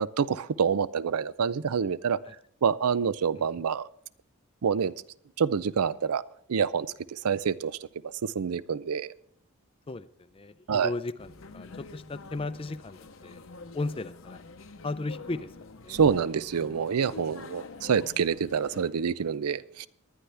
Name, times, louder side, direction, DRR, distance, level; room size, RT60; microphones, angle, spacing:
voice 1, 0.0-2.2 2.6-3.9 4.6-4.9 5.4-6.2 6.5-7.8 8.2-9.1 10.7-10.9 15.9-19.9, right 6 dB, 85° right, 18 dB, 0.5 m, -27 dB
voice 2, 9.9-13.4 13.7-14.4 14.8-16.0, left 2 dB, 25° left, 14 dB, 0.4 m, -36 dB
sound 1, 11.2-18.9, left 3 dB, 60° left, 0.8 m, -46 dB
19.0 x 11.5 x 3.4 m, 0.66 s
head